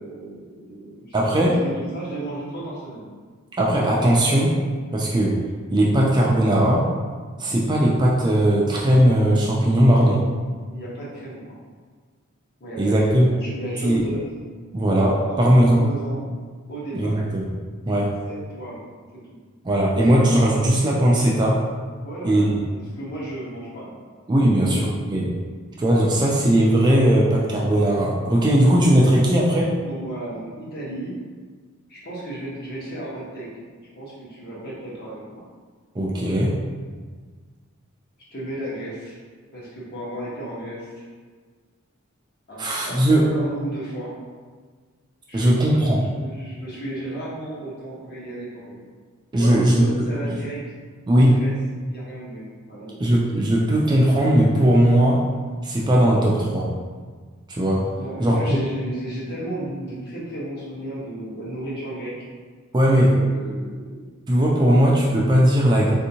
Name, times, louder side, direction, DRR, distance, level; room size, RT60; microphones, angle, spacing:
voice 1, 0.0-3.1 9.8-10.1 10.7-11.5 12.6-14.2 15.2-16.2 16.7-17.2 18.2-18.8 19.1-19.4 22.0-23.9 24.4-25.0 29.8-31.1 31.9-33.6 33.9-35.4 38.3-39.2 39.5-41.1 42.5-44.1 45.3-48.8 49.3-50.6 51.1-51.5 51.8-53.0 58.0-62.1 62.9-64.0, right 1 dB, 45° left, -7 dB, 1.0 m, -34 dB
voice 2, 1.1-1.5 3.6-4.6 4.9-5.4 5.7-6.9 7.4-10.2 12.8-13.3 13.8-14.0 14.7-15.8 16.9-17.4 17.9-18.1 19.6-21.6 22.2-22.6 24.3-25.3 25.8-29.7 35.9-36.5 42.6-43.2 45.3-46.0 49.3-50.0 51.1-51.4 53.0-55.2 55.6-56.7 57.5-57.8 58.2-58.6 62.7-63.1 64.3-65.9, right 1 dB, 20° right, -3 dB, 0.3 m, -18 dB
3.4 x 2.7 x 2.8 m, 1.5 s
head